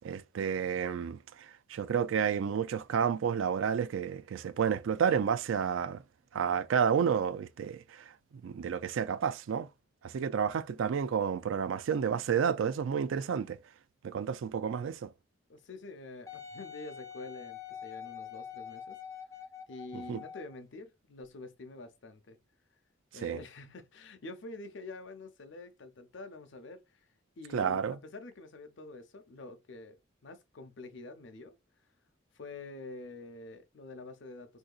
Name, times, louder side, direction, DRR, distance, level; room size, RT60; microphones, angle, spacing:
voice 1, 0.0-1.2 1.7-6.0 6.3-8.1 8.4-9.7 10.0-13.6 14.0-15.1 19.9-20.2 23.2-23.4 27.5-28.0, right 7 dB, 75° right, 0.3 m, -30 dB
voice 2, 15.5-19.0 19.7-22.4 23.1-27.1 27.4-31.6 32.3-34.6, left 2 dB, 65° left, 0.6 m, -47 dB
Wind instrument woodwind instrument, 16.3-20.6 21.2-21.3, left 8 dB, 15° left, 0.4 m, -45 dB
3.6 x 2.7 x 2.4 m
head